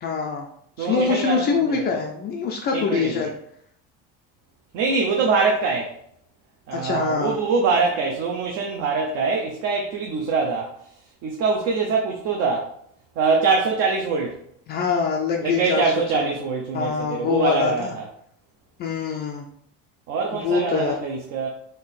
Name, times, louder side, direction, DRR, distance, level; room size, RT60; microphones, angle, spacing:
voice 1, 0.0-0.5 0.8-3.3 6.7-7.4 14.7-15.8 16.7-17.9 18.8-19.4 20.3-20.9, left 5 dB, 35° left, 1 dB, 0.4 m, -24 dB
voice 2, 0.8-1.9 2.7-3.3 4.7-5.9 6.7-10.7 11.2-12.7 13.2-14.4 15.4-18.1 20.1-21.5, right 4 dB, 55° right, 0 dB, 0.7 m, -23 dB
3.8 x 2.7 x 4.1 m, 0.68 s
cardioid pair, 175°, 31 cm